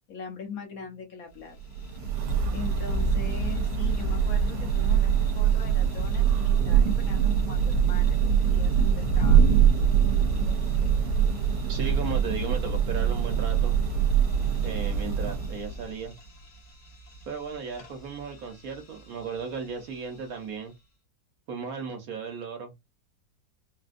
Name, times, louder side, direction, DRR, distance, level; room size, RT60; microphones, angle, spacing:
voice 1, 0.1-1.6 2.5-9.6, left 5 dB, 65° left, 1.0 m, -41 dB
sound 1, 1.2-20.9, right 1 dB, 90° left, 1.7 m, -48 dB
Thunder / Rain, 1.6-16.0, right 7 dB, 80° right, 1.2 m, -23 dB
voice 2, 11.7-13.7 14.6-16.1 17.3-20.7 21.5-22.7, right 5 dB, 65° right, 1.1 m, -35 dB
4.0 x 2.2 x 2.5 m
omnidirectional pair, 1.9 m